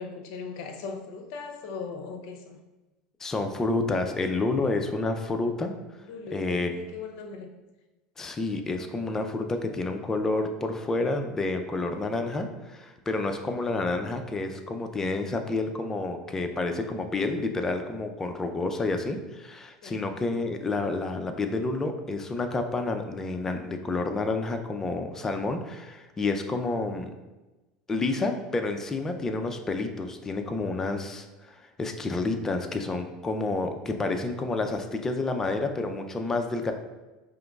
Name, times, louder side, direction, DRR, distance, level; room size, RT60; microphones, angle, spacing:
voice 1, 0.0-2.6 6.1-7.5 19.8-20.2, left 5 dB, 70° left, 4 dB, 0.6 m, -39 dB
voice 2, 3.2-5.7 6.3-6.7 8.2-27.1 27.9-36.7, left 3 dB, 20° left, 6 dB, 0.4 m, -29 dB
5.0 x 2.9 x 2.3 m, 1.1 s
supercardioid pair, 115°, 3 cm